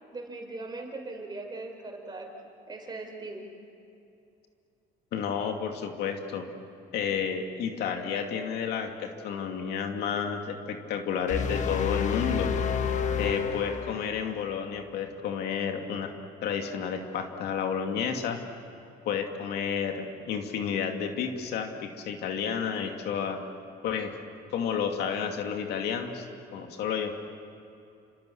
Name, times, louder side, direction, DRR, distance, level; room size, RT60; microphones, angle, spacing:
voice 1, 0.1-2.3 2.7-3.5, right 2 dB, 25° right, 2 dB, 5.3 m, -39 dB
voice 2, 5.1-6.5 6.9-12.5 13.2-16.1 16.4-18.4 19.1-23.4 23.8-24.2 24.5-26.3 26.5-27.1, left 7 dB, 75° left, 4 dB, 2.5 m, -31 dB
sound 1, 11.3-14.5, left 7 dB, 45° left, 1.6 m, -29 dB
29.0 x 26.5 x 7.2 m, 2.7 s
cardioid pair, 110°, 17 cm